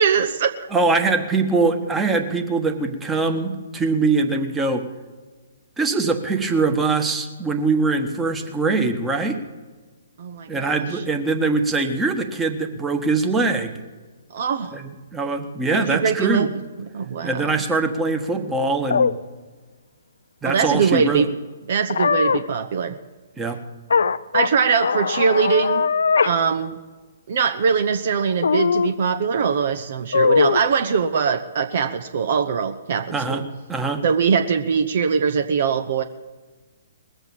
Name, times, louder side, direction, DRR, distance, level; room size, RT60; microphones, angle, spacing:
voice 1, 0.0-0.6 10.2-10.8 14.3-14.8 15.7-16.5 16.9-17.5 20.4-21.3 21.7-23.0 24.3-25.8 26.2-26.8 27.3-33.4 34.0-36.0, right 6 dB, 55° right, 9 dB, 0.8 m, -22 dB
voice 2, 0.7-4.8 5.8-9.4 10.5-13.7 14.7-16.5 17.2-19.2 20.4-21.3 23.4-23.6 33.1-33.4 33.7-34.0, right 3 dB, 10° right, 4 dB, 1.4 m, -22 dB
sound 1, 18.9-19.1 21.9-22.4 23.9-24.5 24.8-26.3 26.7-26.8 28.4-29.0 30.1-30.6, left 5 dB, 65° left, 0.5 m, -20 dB
20.0 x 8.0 x 7.2 m, 1.3 s
figure-of-eight pair, 125°, 0 cm